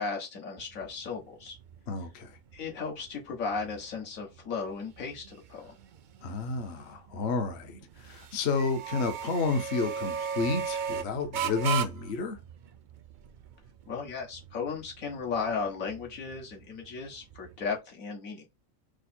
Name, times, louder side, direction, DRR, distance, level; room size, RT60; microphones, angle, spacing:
voice 1, 0.0-1.6 2.5-5.7 13.9-18.4, left 5 dB, 85° left, 1.8 m, -35 dB
sound 1, 0.6-17.8, right 8 dB, 75° right, 0.4 m, -39 dB
voice 2, 1.9-2.4 6.2-12.4, left 4 dB, 55° left, 0.9 m, -31 dB
5.0 x 2.0 x 4.3 m
omnidirectional pair, 1.4 m